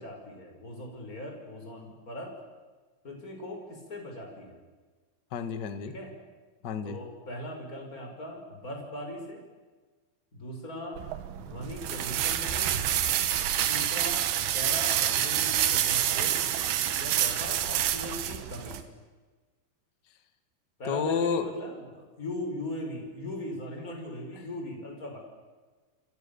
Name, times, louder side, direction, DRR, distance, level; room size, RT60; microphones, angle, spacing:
voice 1, 0.0-2.3 3.0-4.6 5.8-6.1 6.8-9.4 10.3-11.0 11.5-12.7 13.7-14.3 14.5-16.4 17.0-19.0 20.8-25.2, left 1 dB, 20° left, 2 dB, 6.1 m, -39 dB
voice 2, 5.3-5.9 6.6-7.0 20.8-21.5, left 6 dB, 40° left, 9 dB, 1.6 m, -30 dB
sound 1, 11.0-18.8, right 11 dB, 80° right, 3.4 m, -28 dB
28.5 x 26.5 x 7.0 m, 1.3 s
omnidirectional pair, 4.5 m